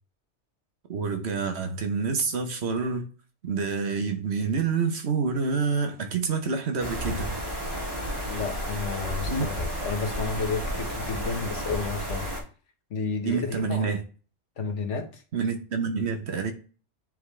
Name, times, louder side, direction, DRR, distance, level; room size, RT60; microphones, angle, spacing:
voice 1, 0.9-3.1 3.4-7.4 9.3-9.5 13.2-14.0 15.3-16.5, right 5 dB, 65° right, 1.3 m, -27 dB
sound 1, 6.8-12.4, equal, 20° right, 1.7 m, -32 dB
voice 2, 8.3-12.3 12.9-13.9 14.6-15.2, left 4 dB, 80° left, 1.5 m, -31 dB
9.1 x 3.8 x 3.3 m
omnidirectional pair, 1.2 m